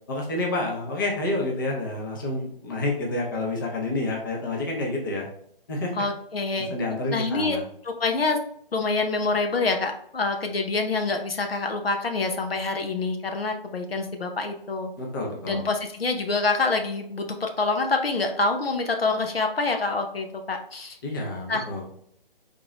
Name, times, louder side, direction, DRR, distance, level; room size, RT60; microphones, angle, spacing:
voice 1, 0.1-5.3 5.7-5.9 6.7-7.6 15.0-15.6 21.0-21.8, left 2 dB, 20° left, -1 dB, 0.7 m, -29 dB
voice 2, 6.0-6.7 7.1-7.6 7.8-8.4 8.7-14.9 15.5-21.0 21.5-21.6, left 3 dB, 85° left, 4 dB, 0.9 m, -26 dB
3.8 x 3.8 x 3.0 m, 0.68 s
figure-of-eight pair, 150°, 29 cm